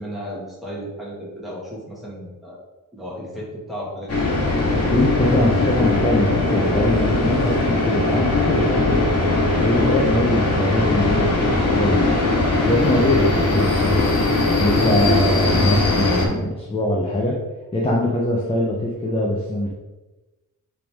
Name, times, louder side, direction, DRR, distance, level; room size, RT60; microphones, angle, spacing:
voice 1, 0.0-2.6 2.9-4.3, equal, ahead, -6 dB, 1.9 m, -34 dB
sound 1, 4.1-16.2, left 2 dB, 50° left, 1.7 m, -20 dB
voice 2, 4.9-12.1 12.5-14.1 14.5-17.4 17.7-19.7, left 1 dB, 15° left, -2 dB, 0.8 m, -22 dB
7.6 x 3.6 x 3.6 m, 1.1 s
wide cardioid pair, 150°, 32 cm